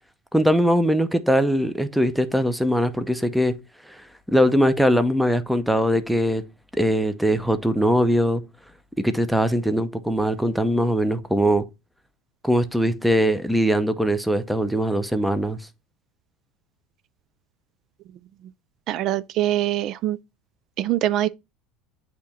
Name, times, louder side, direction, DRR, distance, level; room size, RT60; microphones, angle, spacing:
voice 1, 0.3-3.5 3.9-4.0 4.3-6.4 6.7-8.4 9.0-11.6 12.4-15.6, equal, ahead, 0.7 m, -21 dB
voice 2, 18.9-20.2 20.8-21.3, right 13 dB, 55° right, 0.3 m, -23 dB
8.2 x 2.9 x 4.2 m
supercardioid pair, 110°, 0 cm